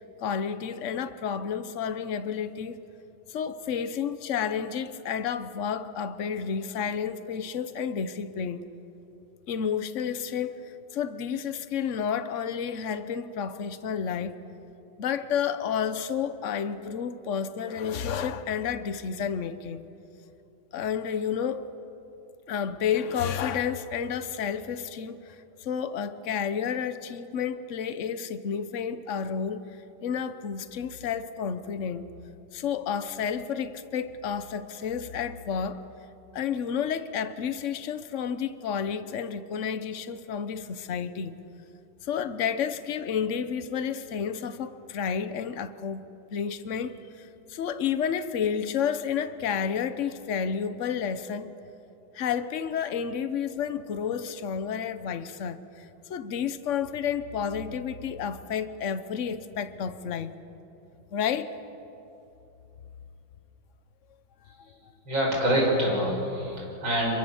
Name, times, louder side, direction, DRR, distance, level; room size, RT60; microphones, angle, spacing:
voice 1, 0.2-2.8 3.3-8.7 9.5-14.4 15.0-19.8 20.7-21.7 22.5-29.7 30.0-32.1 32.5-35.8 36.3-41.4 42.0-46.0 46.3-51.5 52.1-55.8 56.1-60.3 61.1-61.5, left 7 dB, 50° left, 1.0 m, -31 dB
voice 2, 65.1-67.1, equal, 65° right, 6.7 m, -25 dB
27.0 x 23.0 x 7.2 m
omnidirectional pair, 2.2 m